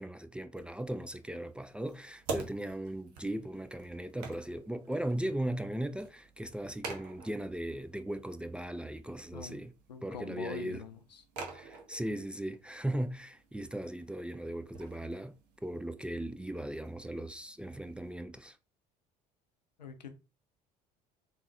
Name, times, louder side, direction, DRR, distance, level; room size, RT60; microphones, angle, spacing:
voice 1, 0.0-9.7 10.0-10.8 11.5-18.6, right 1 dB, 5° right, 0.3 m, -38 dB
sound 1, 0.6-18.2, right 4 dB, 75° right, 0.9 m, -48 dB
voice 2, 9.9-11.2 19.8-20.1, left 6 dB, 90° left, 0.5 m, -43 dB
3.6 x 3.1 x 3.0 m
figure-of-eight pair, 60°, 21 cm